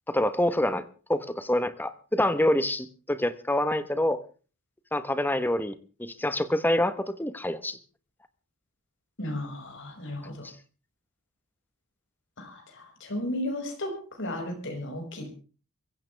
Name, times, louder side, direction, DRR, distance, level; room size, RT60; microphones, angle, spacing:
voice 1, 0.1-0.8 1.1-4.2 4.9-7.8, left 1 dB, 10° left, 12 dB, 1.2 m, -26 dB
voice 2, 9.2-10.5 12.4-15.3, left 1 dB, 60° left, 3 dB, 5.9 m, -34 dB
23.0 x 15.5 x 3.4 m, 0.37 s
head